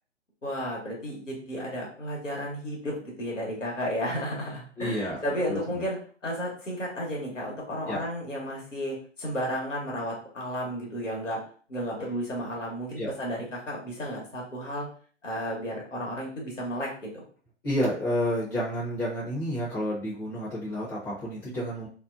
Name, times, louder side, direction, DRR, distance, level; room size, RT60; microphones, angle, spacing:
voice 1, 0.4-6.0 6.2-11.4 11.7-14.9 15.2-17.2, equal, 85° left, -3 dB, 1.1 m, -33 dB
voice 2, 4.8-5.8 7.9-8.0 13.0-13.1 17.6-21.9, equal, 10° left, -9 dB, 0.6 m, -30 dB
2.7 x 2.1 x 2.4 m, 0.43 s
figure-of-eight pair, 125°, 36 cm